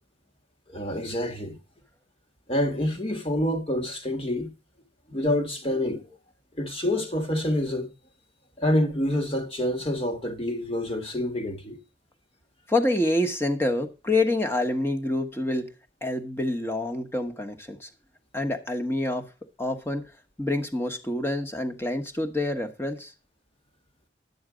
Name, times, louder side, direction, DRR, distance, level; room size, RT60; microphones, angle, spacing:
voice 1, 0.7-1.6 2.5-4.5 5.1-6.0 6.6-7.9 8.6-11.8, left 1 dB, 30° left, 1.7 m, -27 dB
voice 2, 12.7-15.7 16.0-17.9 18.3-19.3 19.6-20.1 20.4-23.1, left 1 dB, 15° left, 1.2 m, -27 dB
11.0 x 8.7 x 5.0 m
head